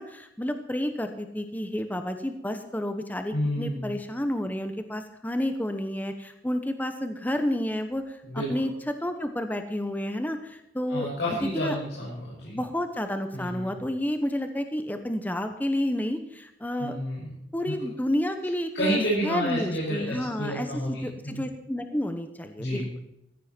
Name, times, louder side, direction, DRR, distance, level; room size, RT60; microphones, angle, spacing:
voice 1, 0.0-11.1 11.5-11.7 12.5-17.0 17.5-22.8, left 1 dB, 10° left, 7 dB, 1.0 m, -30 dB
voice 2, 3.3-3.9 8.2-8.5 10.9-12.6 13.3-13.6 16.8-17.2 17.7-17.8 18.7-21.4 22.6-22.9, equal, 80° left, -7 dB, 6.3 m, -30 dB
15.0 x 15.0 x 4.5 m, 0.83 s
head